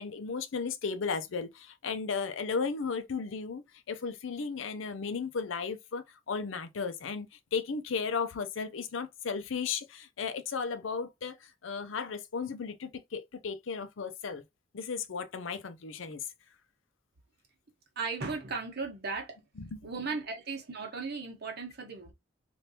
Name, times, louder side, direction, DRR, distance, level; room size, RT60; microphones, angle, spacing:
voice 1, 0.0-3.6 3.9-14.4 14.7-16.2 19.6-19.8, left 5 dB, 75° left, 0.5 m, -35 dB
voice 2, 18.0-19.4 19.8-22.1, right 4 dB, 55° right, 1.1 m, -36 dB
3.3 x 2.6 x 2.7 m
head